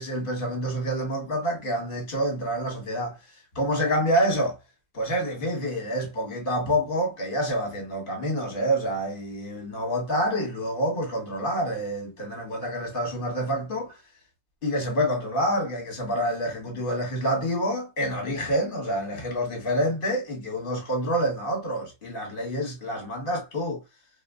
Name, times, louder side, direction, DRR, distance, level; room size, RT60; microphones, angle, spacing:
voice 1, 0.0-3.2 3.5-4.6 4.9-14.0 14.6-23.8, equal, 40° left, 1.3 m, -27 dB
2.6 x 2.1 x 3.5 m
omnidirectional pair, 1.5 m